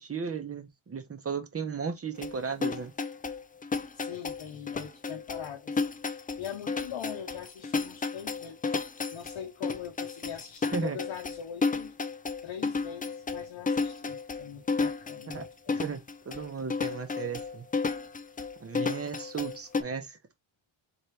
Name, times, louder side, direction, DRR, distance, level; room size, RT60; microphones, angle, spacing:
voice 1, 0.0-2.9 10.7-11.0 15.3-15.5 15.7-17.7 18.6-20.2, right 5 dB, 30° right, 0.8 m, -35 dB
sound 1, 2.2-19.8, left 4 dB, 20° left, 0.3 m, -32 dB
voice 2, 3.9-5.8 6.4-8.6 9.1-11.9 12.4-15.8, left 9 dB, 65° left, 0.9 m, -42 dB
4.4 x 3.3 x 3.2 m
cardioid pair, 120°, 49 cm